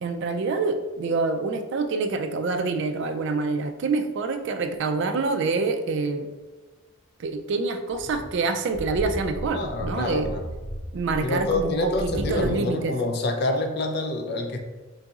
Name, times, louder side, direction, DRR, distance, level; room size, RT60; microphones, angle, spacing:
voice 1, 0.0-6.3 7.2-10.3 10.9-12.9, right 3 dB, 55° right, 7 dB, 0.3 m, -26 dB
sound 1, 7.9-12.5, equal, 70° left, 1.3 m, -35 dB
voice 2, 9.5-10.4 11.2-14.6, left 2 dB, 50° left, 4 dB, 0.4 m, -27 dB
3.9 x 3.8 x 2.4 m, 1.2 s
head